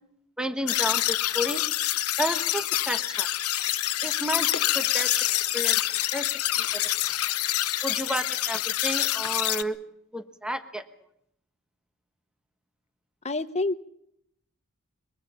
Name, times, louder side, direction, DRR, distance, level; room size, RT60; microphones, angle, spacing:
voice 1, 0.4-1.6 2.2-3.3 4.0-5.3 5.5-5.8 6.1-6.3 6.6-6.9 7.8-9.8 10.1-10.8, equal, 5° right, 9 dB, 1.2 m, -31 dB
sound 1, 0.7-9.6, left 14 dB, 85° left, 0.9 m, -26 dB
voice 2, 13.2-13.8, left 2 dB, 30° left, 12 dB, 0.9 m, -27 dB
23.0 x 22.5 x 5.7 m, 0.75 s
head